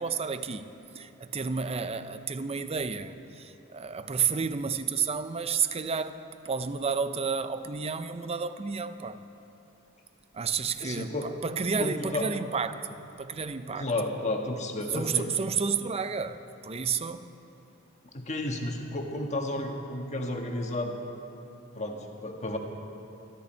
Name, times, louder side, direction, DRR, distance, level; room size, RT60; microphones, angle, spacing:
voice 1, 0.0-9.2 10.3-13.9 14.9-17.3, right 5 dB, 30° right, 0.6 m, -31 dB
voice 2, 10.8-11.3 11.8-12.3 13.7-15.3 18.1-21.0 21.7-22.6, left 2 dB, 35° left, 1.5 m, -32 dB
23.5 x 13.5 x 4.5 m
head